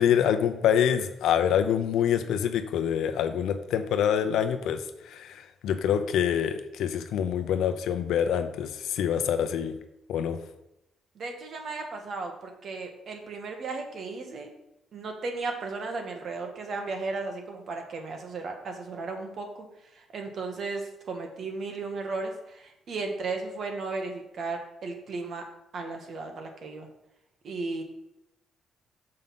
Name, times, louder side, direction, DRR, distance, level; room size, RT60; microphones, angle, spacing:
voice 1, 0.0-4.8 5.1-9.7 10.1-10.4, left 9 dB, 80° left, 9 dB, 0.7 m, -26 dB
voice 2, 11.1-14.5 14.9-19.6 19.9-25.4 25.7-26.9 27.4-27.8, right 3 dB, 60° right, 4 dB, 1.5 m, -35 dB
6.7 x 5.3 x 5.8 m, 0.89 s
cardioid pair, 90°, 0 cm